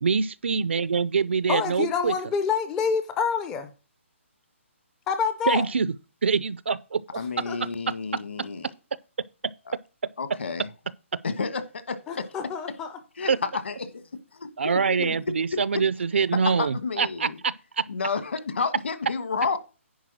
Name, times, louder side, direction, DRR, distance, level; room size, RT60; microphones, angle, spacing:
voice 1, 0.0-2.1 5.5-5.9 6.2-7.2 13.3-13.4 14.6-17.8, right 5 dB, 60° right, 0.5 m, -25 dB
voice 2, 1.5-3.7 5.1-5.6 7.5-7.6 12.1-12.9 15.0-15.1, left 6 dB, 5° left, 0.4 m, -27 dB
voice 3, 7.1-8.7 10.2-10.7 11.2-12.2 13.2-13.3 13.6-14.5 16.6-17.4 17.9-19.6, left 4 dB, 60° left, 1.3 m, -31 dB
10.5 x 4.3 x 6.1 m
hypercardioid pair, 180°, 7 cm